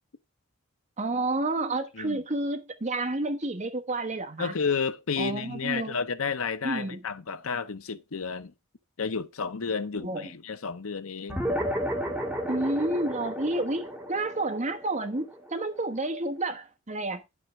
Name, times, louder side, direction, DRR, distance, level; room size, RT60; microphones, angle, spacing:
voice 1, 1.0-4.5 5.2-6.0 6.6-7.0 10.0-10.3 12.5-17.2, right 2 dB, 35° right, 1.3 m, -30 dB
voice 2, 4.4-8.5 9.0-11.5, left 5 dB, 75° left, 0.7 m, -31 dB
sound 1, 11.3-16.1, equal, 5° right, 2.0 m, -33 dB
10.5 x 5.6 x 4.6 m
head